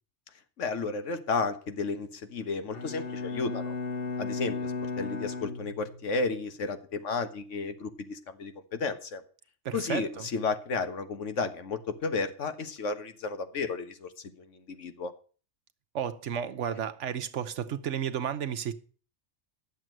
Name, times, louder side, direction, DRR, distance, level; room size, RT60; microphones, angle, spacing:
voice 1, 0.6-3.7 4.2-9.2 9.7-14.1 14.4-15.1, left 4 dB, 85° left, 1.5 m, -33 dB
Bowed string instrument, 2.7-6.3, left 3 dB, 55° left, 1.3 m, -35 dB
voice 2, 9.6-10.3 15.9-18.7, right 8 dB, 75° right, 1.2 m, -32 dB
11.0 x 7.4 x 7.6 m
omnidirectional pair, 1.2 m